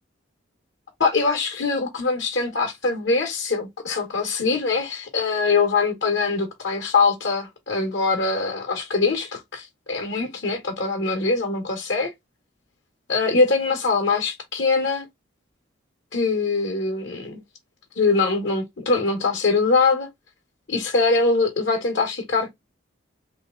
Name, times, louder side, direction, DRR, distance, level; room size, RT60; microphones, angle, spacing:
voice 1, 1.0-12.1 13.1-15.1 16.1-17.4 18.0-20.1 20.7-22.5, left 4 dB, 65° left, 1.1 m, -23 dB
3.2 x 2.9 x 3.7 m
head